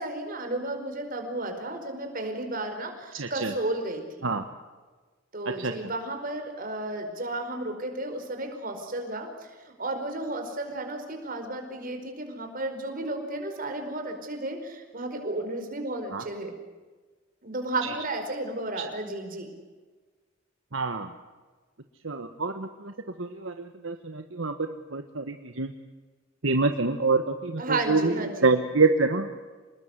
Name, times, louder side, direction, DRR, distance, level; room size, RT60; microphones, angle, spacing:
voice 1, 0.0-4.3 5.3-16.5 17.4-19.5 27.6-28.5, right 2 dB, 45° right, 5 dB, 4.9 m, -33 dB
voice 2, 3.1-3.5 4.2-4.4 5.6-5.9 16.1-16.2 17.8-17.9 20.7-21.1 22.0-22.9 23.2-25.7 26.4-29.4, right 3 dB, 65° right, 6 dB, 1.4 m, -26 dB
27.0 x 20.5 x 8.2 m, 1.3 s
head